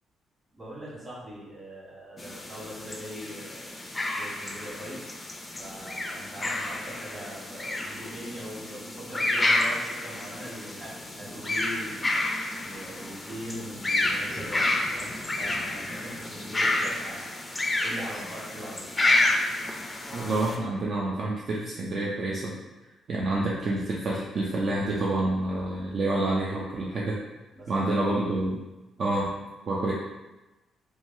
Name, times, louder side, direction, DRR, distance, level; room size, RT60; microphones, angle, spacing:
voice 1, 0.5-3.7 4.1-5.0 5.6-12.0 12.6-17.4 17.8-18.9 26.8-27.1 27.5-28.1, equal, 25° right, -7 dB, 1.4 m, -41 dB
sound 1, 2.2-20.6, left 2 dB, 20° left, 0.4 m, -30 dB
voice 2, 20.1-22.5 23.1-27.2 27.7-28.6 29.0-29.3 29.7-29.9, right 2 dB, 50° right, -4 dB, 0.4 m, -28 dB
3.1 x 2.2 x 2.6 m, 1.1 s
cardioid pair, 90°, 0 cm